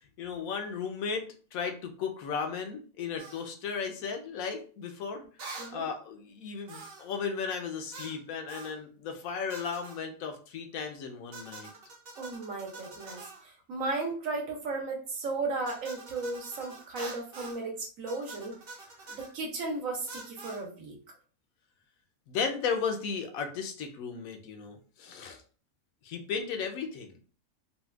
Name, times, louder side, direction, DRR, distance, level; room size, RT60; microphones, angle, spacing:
voice 1, 0.2-5.2 5.7-11.7 22.3-25.4 26.0-27.2, left 6 dB, 80° left, 5 dB, 1.1 m, -35 dB
sound 1, 3.2-3.4 5.4-5.8 6.7-7.1 7.9-8.2 8.5-8.8 9.5-10.0 11.3-13.4 15.7-17.6 18.1-19.3 20.1-20.6, right 3 dB, 50° right, 0.8 m, -45 dB
voice 2, 12.2-18.5 19.2-21.0, right 3 dB, 70° right, 1 dB, 1.2 m, -35 dB
4.1 x 2.2 x 2.3 m, 0.40 s
omnidirectional pair, 1.5 m